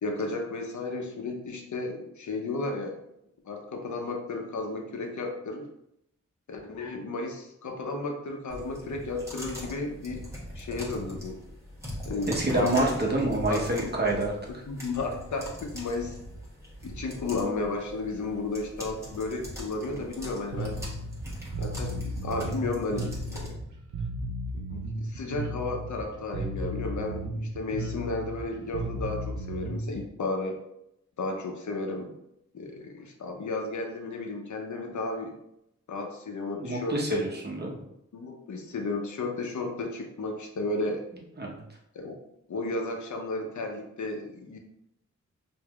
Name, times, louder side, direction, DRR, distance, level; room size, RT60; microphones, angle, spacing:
voice 1, 0.0-3.0 3.4-5.7 6.5-10.3 10.5-11.4 12.1-12.7 13.5-13.6 14.7-16.2 16.8-20.8 21.6-23.6 24.7-30.6 31.2-32.1 32.5-35.3 35.9-37.2 38.1-41.0 41.9-42.2 42.5-44.6, left 3 dB, 80° left, 2 dB, 0.7 m, -33 dB
sound 1, 8.5-23.5, equal, 10° right, 1.2 m, -41 dB
voice 2, 12.3-14.6 36.6-37.8 41.4-41.6, right 2 dB, 35° right, -1 dB, 1.0 m, -27 dB
Bass guitar, 20.5-30.0, right 1 dB, 80° right, 0.6 m, -35 dB
4.6 x 2.6 x 2.3 m, 0.80 s
wide cardioid pair, 65°, 29 cm